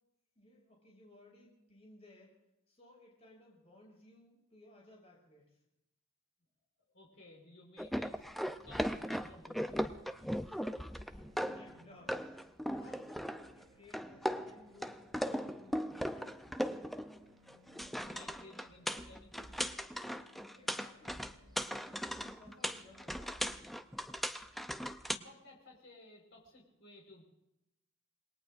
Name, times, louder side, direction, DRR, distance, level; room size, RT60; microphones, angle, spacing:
voice 1, 0.3-2.3 2.7-5.6 10.4-14.9 15.3-16.5 20.5-21.4 22.2-23.5, left 2 dB, 30° left, -2 dB, 6.0 m, -60 dB
voice 2, 6.9-8.3 8.6-10.3 18.0-19.5 25.0-27.2, left 1 dB, 70° left, -1 dB, 4.7 m, -57 dB
sound 1, 7.8-11.8 12.1-13.6 13.9-17.2 17.5-25.2, equal, ahead, 0.5 m, -38 dB
sound 2, 11.2-23.2, right 1 dB, 75° right, 3.4 m, -65 dB
27.5 x 20.0 x 2.6 m, 0.89 s
head